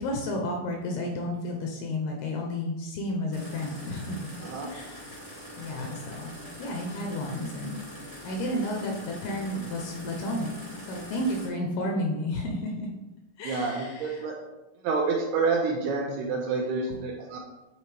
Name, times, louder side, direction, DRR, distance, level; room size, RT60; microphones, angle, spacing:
voice 1, 0.0-4.3 4.7-5.2 5.6-6.3 6.6-7.7 8.2-10.5 10.9-12.9 13.4-14.3 16.9-17.0, left 1 dB, 75° left, 1 dB, 2.4 m, -32 dB
sound 1, 3.3-11.5, equal, 20° left, 0.8 m, -43 dB
voice 2, 13.4-14.3 14.8-17.4, right 4 dB, 80° right, 0 dB, 2.4 m, -28 dB
9.2 x 4.1 x 3.3 m, 1.0 s
omnidirectional pair, 5.0 m